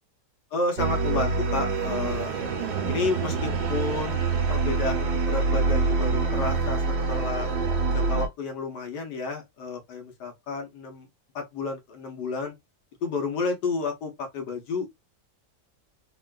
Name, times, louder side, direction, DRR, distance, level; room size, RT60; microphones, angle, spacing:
voice 1, 0.5-2.3 2.9-4.2 4.5-7.5 7.9-11.1 11.3-12.5 13.0-14.9, left 3 dB, 80° left, 1.5 m, -31 dB
sound 1, 0.8-8.3, right 4 dB, 75° right, 1.3 m, -26 dB
3.6 x 2.2 x 2.3 m
omnidirectional pair, 1.8 m